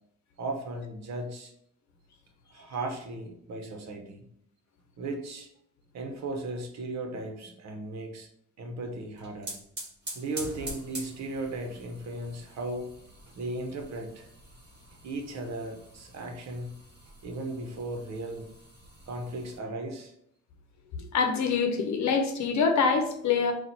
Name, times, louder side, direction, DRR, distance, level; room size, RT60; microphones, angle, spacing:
voice 1, 0.4-1.5 2.5-4.2 5.0-5.5 5.9-8.3 8.6-9.6 10.1-12.9 13.4-14.3 15.0-16.8 17.2-18.5 19.1-20.1, right 2 dB, 60° right, 4 dB, 1.0 m, -36 dB
sound 1, 9.0-19.6, right 1 dB, 35° right, 1.4 m, -45 dB
voice 2, 21.0-23.5, left 5 dB, 65° left, 6 dB, 0.8 m, -25 dB
4.1 x 2.5 x 4.4 m, 0.71 s
cardioid pair, 90°, 30 cm